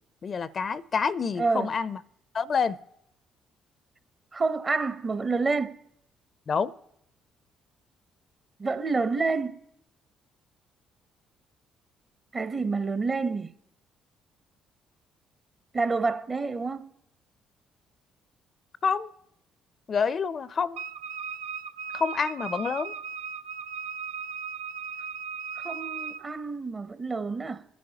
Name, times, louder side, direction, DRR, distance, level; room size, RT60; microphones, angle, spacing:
voice 1, 0.2-2.0 2.3-2.8 6.5-6.7 18.8-19.1 19.9-20.8 21.9-22.9, left 6 dB, 45° left, 0.4 m, -27 dB
voice 2, 1.4-1.7 4.3-5.8 8.6-9.6 12.3-13.5 15.7-16.9 25.5-27.7, right 4 dB, 35° right, 0.7 m, -28 dB
Wind instrument woodwind instrument, 20.8-26.3, right 7 dB, 80° right, 0.4 m, -37 dB
21.0 x 10.5 x 2.8 m
hypercardioid pair, 50°, 0 cm